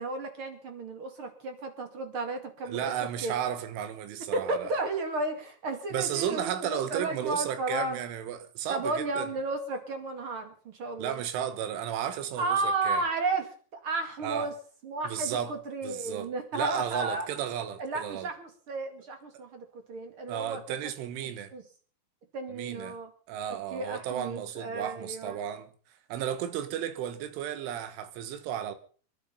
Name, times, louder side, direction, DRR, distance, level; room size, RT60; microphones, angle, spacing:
voice 1, 0.0-2.9 3.2-3.3 4.3-8.0 8.7-11.2 12.4-14.5 14.8-17.3 17.8-20.6 21.5-21.6 22.3-23.1 23.5-25.4, right 3 dB, 45° right, 1.8 m, -33 dB
voice 2, 2.7-4.7 5.9-9.3 11.0-13.0 14.2-14.5 15.0-15.6 15.8-18.3 20.3-21.5 22.5-23.0 23.3-25.7 26.1-28.8, right 10 dB, 80° right, 3.8 m, -34 dB
24.5 x 11.0 x 5.4 m
omnidirectional pair, 5.6 m